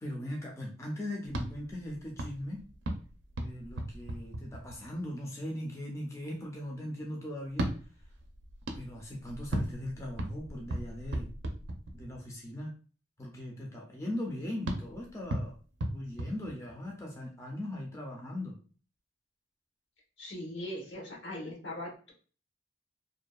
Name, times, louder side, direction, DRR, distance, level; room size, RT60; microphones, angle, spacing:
voice 1, 0.0-2.7 3.4-7.7 8.7-11.3 11.9-12.7 13.2-15.6 15.9-18.6, left 1 dB, 15° left, -1 dB, 0.4 m, -39 dB
sound 1, 1.2-5.1 7.4-12.3 14.6-17.1, right 1 dB, 80° right, 0.4 m, -37 dB
voice 2, 20.2-22.1, left 1 dB, 75° left, -2 dB, 1.0 m, -40 dB
2.6 x 2.1 x 2.2 m, 0.38 s
head